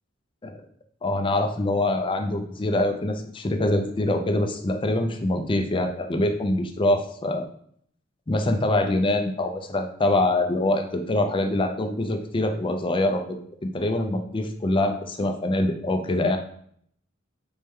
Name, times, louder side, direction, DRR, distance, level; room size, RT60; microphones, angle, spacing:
voice 1, 1.0-7.5 8.3-16.4, left 1 dB, 25° left, 5 dB, 0.4 m, -24 dB
4.3 x 3.2 x 3.5 m, 0.64 s
head